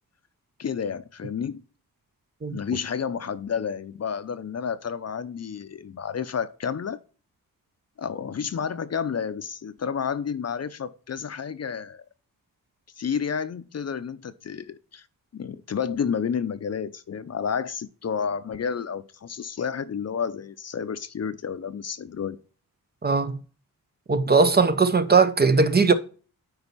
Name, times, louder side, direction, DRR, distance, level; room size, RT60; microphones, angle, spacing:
voice 1, 0.6-1.6 2.5-7.0 8.0-12.0 13.0-15.1 15.3-22.4, left 7 dB, 45° left, 0.6 m, -30 dB
voice 2, 23.0-23.4 24.1-25.9, right 4 dB, 30° right, 0.7 m, -19 dB
9.8 x 4.1 x 4.0 m
wide cardioid pair, 115°, 35 cm